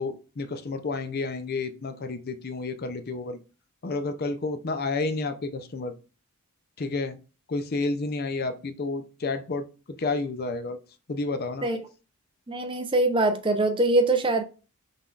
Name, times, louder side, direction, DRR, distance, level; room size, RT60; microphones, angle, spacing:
voice 1, 0.0-3.4 3.8-5.9 6.8-7.2 7.5-10.8 11.1-11.7, left 3 dB, 45° left, 0.5 m, -30 dB
voice 2, 12.5-14.4, right 2 dB, 20° right, 0.6 m, -23 dB
5.7 x 3.6 x 2.4 m
head